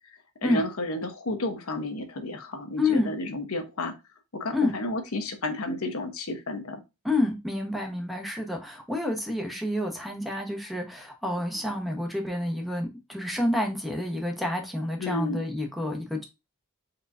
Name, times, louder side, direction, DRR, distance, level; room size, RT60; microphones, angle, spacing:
voice 1, 0.4-3.9 4.3-6.8 15.0-15.4, left 2 dB, 70° left, 7 dB, 0.9 m, -32 dB
voice 2, 2.8-3.1 4.5-4.7 7.0-16.2, left 2 dB, ahead, 2 dB, 0.9 m, -28 dB
4.4 x 3.8 x 2.5 m, 0.25 s
head